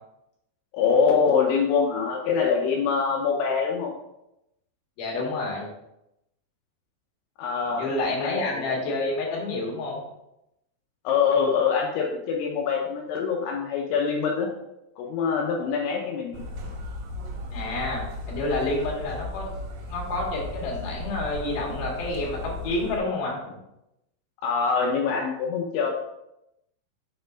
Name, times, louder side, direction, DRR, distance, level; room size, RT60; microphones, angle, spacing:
voice 1, 0.7-3.9 7.4-7.9 8.2-8.6 11.0-14.5 15.0-16.4 24.4-25.9, left 6 dB, 80° left, 0 dB, 2.8 m, -24 dB
voice 2, 5.0-5.7 7.7-10.0 17.5-19.5 19.9-23.6, left 2 dB, 60° left, -3 dB, 3.1 m, -29 dB
sound 1, 16.3-23.0, left 1 dB, 75° right, 3.4 m, -36 dB
7.9 x 4.2 x 3.9 m, 0.86 s
omnidirectional pair, 5.8 m